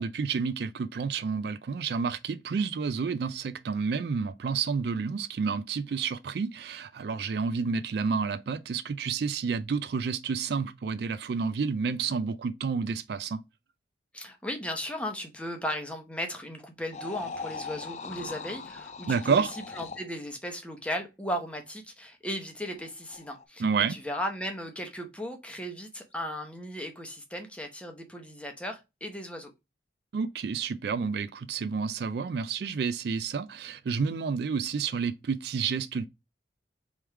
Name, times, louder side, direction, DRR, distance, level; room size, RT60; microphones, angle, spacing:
voice 1, 0.0-13.4 19.1-19.5 23.6-24.0 30.1-36.0, right 5 dB, 60° right, 0.3 m, -30 dB
voice 2, 14.1-19.5 19.7-29.5, equal, 5° left, 0.8 m, -36 dB
sound 1, 16.9-20.1 22.7-23.4, left 4 dB, 40° left, 0.4 m, -40 dB
3.5 x 3.1 x 4.5 m
head